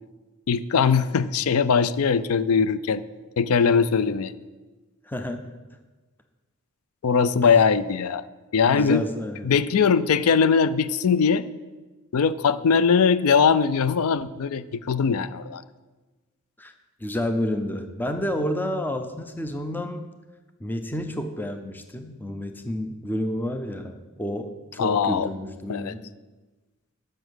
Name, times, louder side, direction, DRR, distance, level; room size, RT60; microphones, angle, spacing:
voice 1, 0.5-3.0 3.4-4.3 7.0-8.2 8.5-9.1 9.4-11.5 12.1-15.6 24.8-25.3 25.7-26.0, left 6 dB, 75° left, 15 dB, 0.4 m, -21 dB
voice 2, 5.1-5.5 7.4-7.5 8.7-9.6 16.6-16.7 17.0-20.1 20.6-26.0, left 1 dB, 10° left, 7 dB, 0.5 m, -30 dB
7.0 x 6.5 x 6.2 m, 1.2 s
head